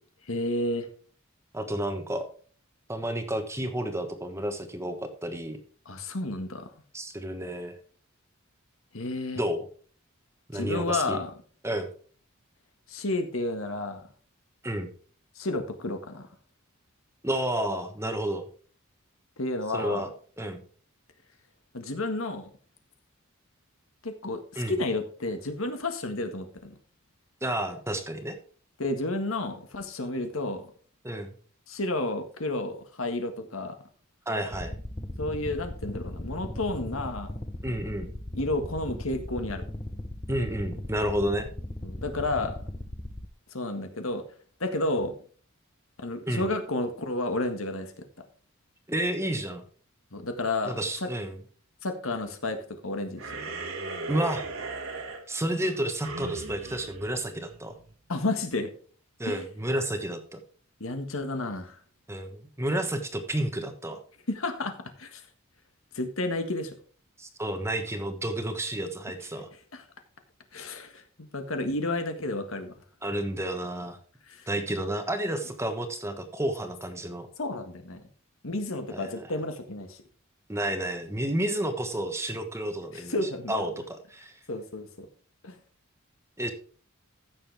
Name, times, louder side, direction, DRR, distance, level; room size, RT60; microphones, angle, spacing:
voice 1, 0.3-0.9 5.8-6.7 8.9-9.4 10.5-11.3 12.9-14.0 15.3-16.3 19.4-20.0 21.7-22.5 24.0-26.8 28.8-30.6 31.7-33.7 35.2-37.3 38.3-39.6 41.8-42.6 43.5-44.2 44.6-45.1 46.0-48.0 50.1-50.7 51.0-51.1 51.8-52.6 52.8-53.2 58.1-58.7 59.2-59.5 60.8-61.8 64.3-64.7 65.0-65.2 65.9-66.7 69.7-69.8 70.5-72.7 74.3-74.5 77.4-78.0 78.4-80.0 82.9-83.7 84.5-85.1 85.4-85.6, left 2 dB, 75° left, 6 dB, 1.7 m, -31 dB
voice 2, 1.5-2.3 2.9-5.6 6.9-7.8 9.3-9.7 10.5-11.2 11.6-11.9 14.6-14.9 17.2-18.5 19.7-20.1 20.4-20.6 24.6-24.8 27.4-28.4 31.0-31.3 34.3-34.8 37.6-38.1 40.3-41.5 46.3-46.5 48.9-49.6 50.6-51.4 54.1-54.4 55.3-57.7 59.2-60.4 62.1-64.0 67.2-69.5 73.0-74.0 74.5-77.3 78.9-79.3 80.5-84.3 86.4-86.5, right 1 dB, 15° right, 7 dB, 1.2 m, -31 dB
sound 1, 34.5-43.3, left 1 dB, 25° left, 1.0 m, -38 dB
sound 2, 53.2-57.9, right 3 dB, 70° right, 2.1 m, -37 dB
15.0 x 6.7 x 3.5 m, 0.43 s
head